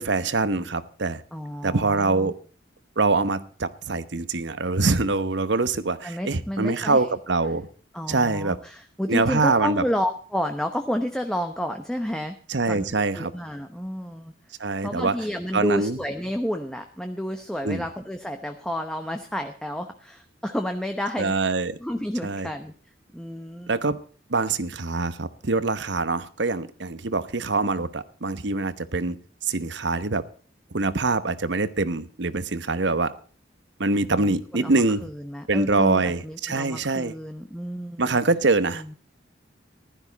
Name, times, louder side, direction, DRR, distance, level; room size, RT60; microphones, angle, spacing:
voice 1, 0.0-1.2 1.6-2.3 3.0-7.7 8.1-8.6 9.1-9.8 12.5-13.3 14.6-15.2 15.5-16.0 17.6-17.9 21.2-21.8 22.2-22.5 23.7-24.0 24.3-29.2 29.5-30.2 30.7-33.1 33.8-35.1 35.5-37.1 38.0-39.0, right 3 dB, 65° right, 14 dB, 1.0 m, -24 dB
voice 2, 1.3-2.3 6.0-7.0 7.9-12.4 12.6-12.8 13.1-14.3 14.8-21.4 21.8-22.7 23.1-23.9 34.1-34.3 34.5-38.0 38.7-38.9, equal, 5° left, 6 dB, 0.9 m, -30 dB
15.0 x 12.5 x 4.0 m, 0.43 s
head